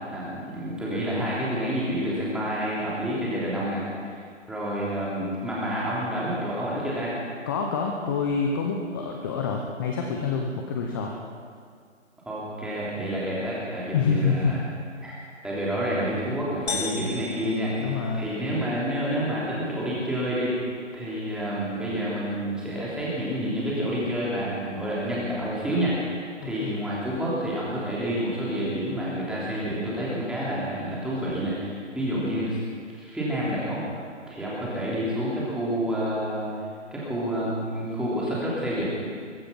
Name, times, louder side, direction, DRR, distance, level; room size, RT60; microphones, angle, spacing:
voice 1, 0.1-4.1 4.5-7.1 12.2-14.6 15.0-15.2 15.4-20.5 20.9-32.6 32.9-33.8 34.3-36.5 36.9-38.9, equal, ahead, -7 dB, 3.1 m, -29 dB
voice 2, 7.5-11.1 13.9-14.5 17.8-18.3 26.6-26.7, left 5 dB, 15° left, 1 dB, 0.8 m, -27 dB
sound 1, 16.7-18.6, left 4 dB, 60° left, 1.8 m, -35 dB
22.5 x 10.0 x 5.8 m, 2.1 s
figure-of-eight pair, 150°, 37 cm